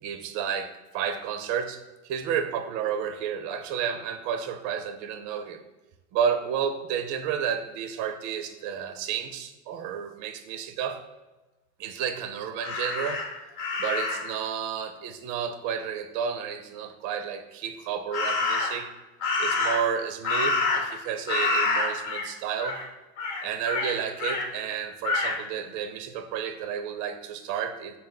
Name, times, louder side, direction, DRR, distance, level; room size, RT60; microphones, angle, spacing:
voice 1, 0.0-5.6 6.1-11.0 11.8-13.3 13.8-18.9 19.4-22.8 23.4-28.0, right 8 dB, 50° right, 8 dB, 0.5 m, -31 dB
Crow, 12.6-14.4 18.1-18.9 19.2-21.0 21.3-22.3 22.6-22.8 23.2-24.5 25.0-25.4, left 3 dB, 55° left, 0.9 m, -27 dB
4.0 x 2.2 x 3.8 m, 1.1 s
hypercardioid pair, 95°, 37 cm